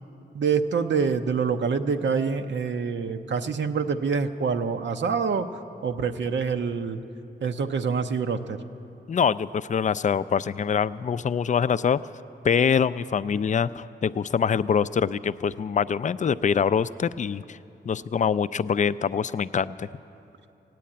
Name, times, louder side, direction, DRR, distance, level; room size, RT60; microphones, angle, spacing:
voice 1, 0.3-5.5 5.8-7.0 7.4-8.6, right 5 dB, 80° right, 7 dB, 0.7 m, -26 dB
voice 2, 9.1-12.0 12.4-17.6 17.9-19.9, left 7 dB, 40° left, 15 dB, 0.4 m, -24 dB
16.5 x 9.3 x 8.6 m, 2.7 s
cardioid pair, 70°, 19 cm